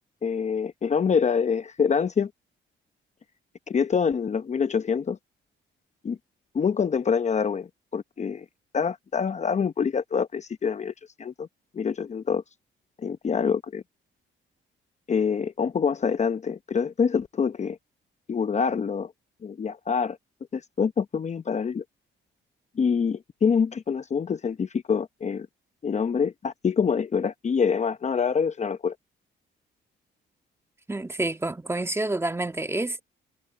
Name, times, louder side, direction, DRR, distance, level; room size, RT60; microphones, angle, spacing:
voice 1, 0.2-2.3 3.7-5.2 6.0-6.2 6.5-8.4 8.7-10.9 11.2-11.5 11.7-12.4 13.0-13.8 15.1-17.8 18.3-19.1 19.4-20.2 20.5-21.8 22.8-25.5 25.8-28.9, left 6 dB, 35° left, 0.8 m, -25 dB
voice 2, 30.9-33.0, right 2 dB, 15° right, 1.8 m, -28 dB
cardioid pair, 90°, 20 cm